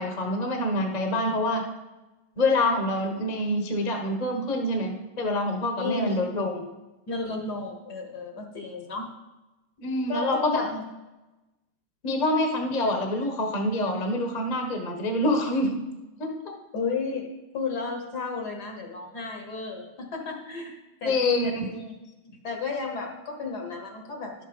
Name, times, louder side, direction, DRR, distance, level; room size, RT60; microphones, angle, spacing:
voice 1, 0.0-1.6 2.4-6.6 9.8-10.6 12.0-15.8 16.2-16.5 21.0-21.7, left 1 dB, 25° left, 3 dB, 1.0 m, -26 dB
voice 2, 5.8-6.3 7.1-9.1 10.1-10.9 16.7-22.0 22.4-24.4, left 4 dB, 55° left, 3 dB, 1.5 m, -33 dB
11.0 x 6.7 x 5.3 m, 1.1 s
omnidirectional pair, 2.4 m